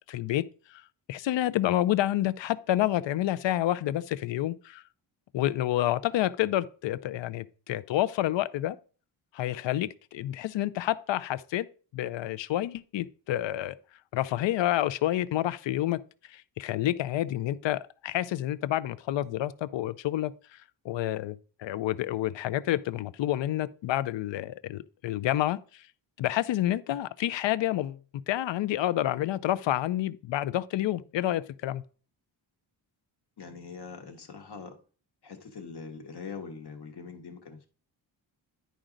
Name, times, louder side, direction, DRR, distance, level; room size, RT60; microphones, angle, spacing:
voice 1, 0.1-0.8 1.1-4.8 5.3-8.8 9.3-11.7 11.9-13.8 14.1-16.0 16.3-20.6 20.8-25.8 26.2-28.0 28.3-31.8, left 13 dB, 70° left, 0.5 m, -29 dB
voice 2, 33.4-34.8 35.2-37.7, left 5 dB, 55° left, 1.1 m, -43 dB
10.5 x 5.0 x 3.8 m
wide cardioid pair, 165°, 46 cm